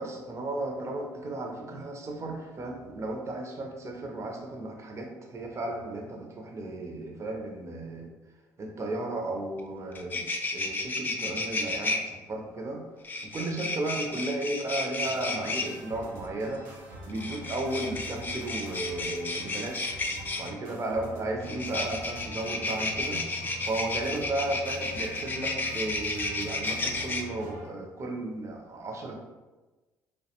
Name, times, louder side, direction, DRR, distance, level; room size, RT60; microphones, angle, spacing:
voice 1, 0.0-8.1 8.6-10.2 10.5-12.8 13.2-16.7 17.0-20.0 20.4-23.2 23.6-29.2, right 2 dB, 40° right, 1 dB, 0.5 m, -34 dB
sound 1, 9.6-9.7 9.9-12.0 13.0-15.7 17.1-20.5 21.4-27.2, left 2 dB, 25° left, 0.3 m, -32 dB
sound 2, 15.0-27.7, right 1 dB, 85° right, 0.6 m, -44 dB
2.3 x 2.1 x 2.8 m, 1.2 s
supercardioid pair, 65°, 8 cm